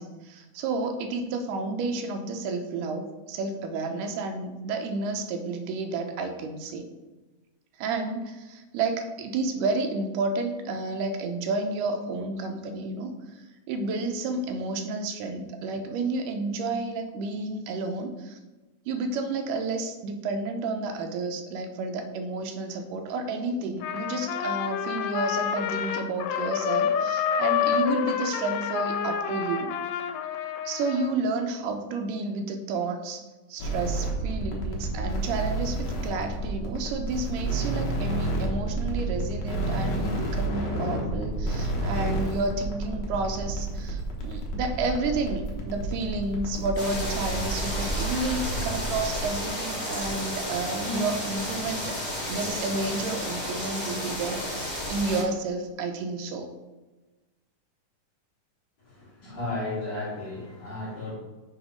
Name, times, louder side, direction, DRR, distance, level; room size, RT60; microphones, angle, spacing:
voice 1, 0.0-6.9 7.8-13.2 13.7-18.4 18.9-29.7 30.7-33.2 33.5-52.0 52.3-56.5, right 3 dB, 85° right, 5 dB, 2.2 m, -31 dB
Trumpet, 23.8-31.1, left 8 dB, 90° left, 2.2 m, -28 dB
sound 1, 33.6-49.2, right 2 dB, 75° left, 0.9 m, -30 dB
sound 2, 46.8-55.2, equal, 20° left, 1.3 m, -32 dB
voice 2, 58.9-61.1, left 2 dB, 35° left, -9 dB, 2.6 m, -34 dB
6.3 x 3.9 x 5.0 m, 1.2 s
omnidirectional pair, 3.7 m